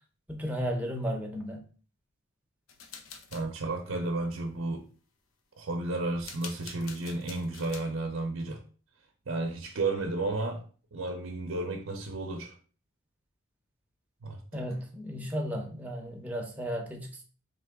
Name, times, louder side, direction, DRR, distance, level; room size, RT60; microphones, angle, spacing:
voice 1, 0.3-1.6 14.5-17.2, equal, 5° right, 1 dB, 0.7 m, -34 dB
sound 1, 2.7-3.4 6.2-7.8, left 5 dB, 85° left, 0.7 m, -46 dB
voice 2, 3.3-4.8 5.6-8.6 9.3-10.6 10.9-12.5 14.2-14.4, right 2 dB, 70° right, 4 dB, 0.6 m, -32 dB
3.8 x 3.2 x 3.4 m, 0.39 s
head